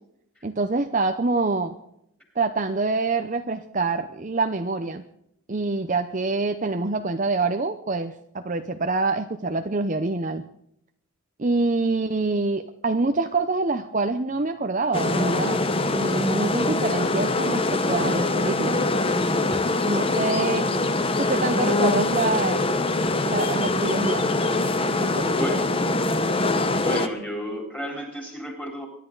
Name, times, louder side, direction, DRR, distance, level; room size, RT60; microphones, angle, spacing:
voice 1, 0.4-1.8 2.4-5.0 5.5-10.4 11.4-15.6 15.9-18.8 19.9-20.7 21.2-22.6 23.2-24.3 24.9-25.5, right 3 dB, 35° right, 7 dB, 0.7 m, -26 dB
sound 1, 14.9-27.1, left 2 dB, 25° left, 1.0 m, -23 dB
voice 2, 26.7-28.9, equal, 5° left, 2 dB, 3.9 m, -31 dB
24.0 x 11.0 x 4.0 m, 0.74 s
head